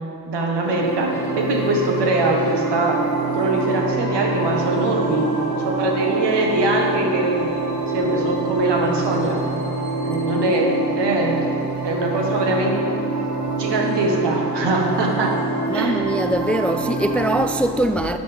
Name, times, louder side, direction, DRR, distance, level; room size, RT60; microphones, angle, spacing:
voice 1, 0.2-3.1 3.3-5.4 5.6-7.5 7.9-9.5 10.0-11.5 11.8-12.8 13.6-15.4 15.7-16.0, right 2 dB, 70° right, 1 dB, 1.6 m, -22 dB
sound 1, 0.6-17.5, right 3 dB, 40° right, 2.2 m, -25 dB
voice 2, 15.7-18.2, right 1 dB, 5° left, 8 dB, 0.4 m, -22 dB
12.0 x 6.9 x 3.5 m, 2.4 s
supercardioid pair, 45°, 43 cm